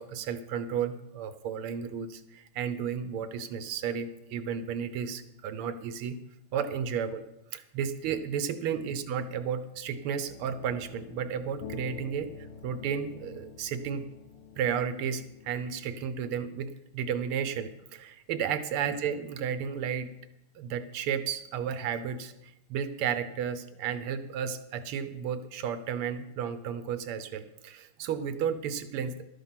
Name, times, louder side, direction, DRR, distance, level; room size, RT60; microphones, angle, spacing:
voice 1, 0.0-6.2 6.5-7.2 7.5-14.0 14.6-20.1 20.5-29.3, right 7 dB, 80° right, 11 dB, 1.6 m, -33 dB
sound 1, 10.3-16.1, left 6 dB, 65° left, 1.0 m, -47 dB
12.5 x 9.1 x 5.8 m, 0.90 s
omnidirectional pair, 2.4 m